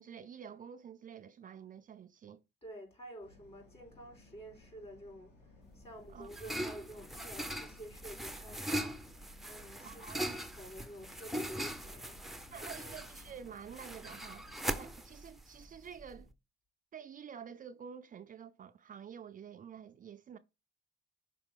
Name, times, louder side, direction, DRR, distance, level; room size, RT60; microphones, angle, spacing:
voice 1, 0.0-2.4 6.1-6.6 9.8-10.4 12.5-14.5 14.7-16.3 16.9-20.4, right 7 dB, 45° right, 0.5 m, -49 dB
voice 2, 2.6-12.2 12.6-12.9, equal, 30° left, 4.4 m, -50 dB
sound 1, 3.2-14.7, left 3 dB, 55° left, 3.5 m, -61 dB
sound 2, 5.7-16.3, right 1 dB, ahead, 0.7 m, -41 dB
5.8 x 4.7 x 3.7 m
cardioid pair, 90°, 20 cm